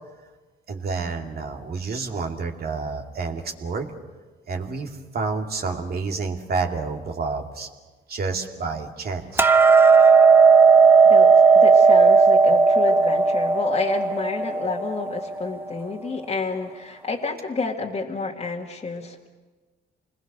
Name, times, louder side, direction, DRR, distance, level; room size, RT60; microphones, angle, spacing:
voice 1, 0.7-3.9 4.5-7.7 8.1-9.5, right 4 dB, 50° right, 3 dB, 2.5 m, -29 dB
Hammer, 9.4-15.6, right 5 dB, 10° right, 0.7 m, -15 dB
voice 2, 11.0-19.3, left 3 dB, 30° left, -2 dB, 2.0 m, -30 dB
26.5 x 20.5 x 6.7 m, 1.3 s
cardioid pair, 90°, 20 cm